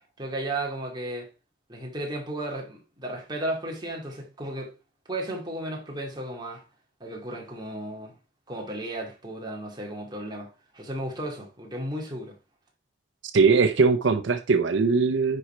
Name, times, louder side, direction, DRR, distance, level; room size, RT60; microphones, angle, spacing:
voice 1, 0.2-1.3 1.7-4.7 5.1-6.6 7.0-8.2 8.5-12.4, right 1 dB, 20° right, 2.3 m, -34 dB
voice 2, 13.3-15.4, right 4 dB, 75° right, 0.7 m, -21 dB
10.0 x 4.4 x 4.5 m
head